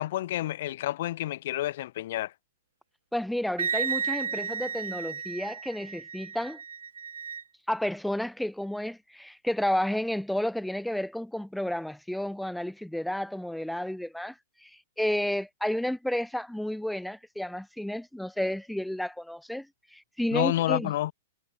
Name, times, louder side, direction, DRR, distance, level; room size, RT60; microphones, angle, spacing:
voice 1, 0.0-2.3 20.3-21.1, left 14 dB, 60° left, 0.7 m, -29 dB
voice 2, 3.1-6.6 7.7-14.3 14.6-14.7 15.0-19.7 19.9-20.9, left 1 dB, ahead, 1.5 m, -31 dB
Wind instrument woodwind instrument, 3.6-7.4, right 7 dB, 85° right, 1.5 m, -33 dB
hypercardioid pair, 130°, 0 cm